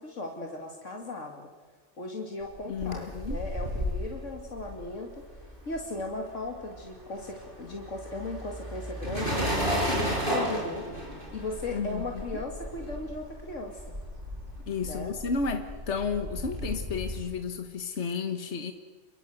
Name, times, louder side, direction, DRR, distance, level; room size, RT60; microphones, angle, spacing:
voice 1, 0.0-1.4 2.0-5.1 5.7-10.9 11.3-13.8 14.8-15.2, left 2 dB, 85° left, 2 dB, 2.8 m, -37 dB
sound 1, 2.5-6.2 6.5-17.2, equal, 45° right, 7.4 m, -34 dB
voice 2, 2.7-3.4 11.7-12.4 14.7-18.7, left 5 dB, 65° left, 6 dB, 1.8 m, -32 dB
29.0 x 23.0 x 8.0 m, 1.4 s
omnidirectional pair, 1.3 m